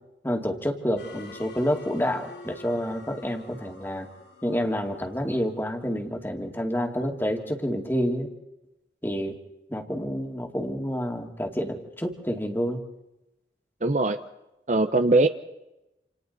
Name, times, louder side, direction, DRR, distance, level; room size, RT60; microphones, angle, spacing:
voice 1, 0.2-4.1 4.4-8.3 9.0-9.4 9.7-12.8, equal, 10° left, 3 dB, 2.3 m, -28 dB
sound 1, 1.0-6.0, left 2 dB, 85° left, 7.8 m, -47 dB
voice 2, 13.8-14.2 14.7-15.3, right 2 dB, 40° right, 10 dB, 0.8 m, -20 dB
28.5 x 28.5 x 4.1 m, 0.94 s
head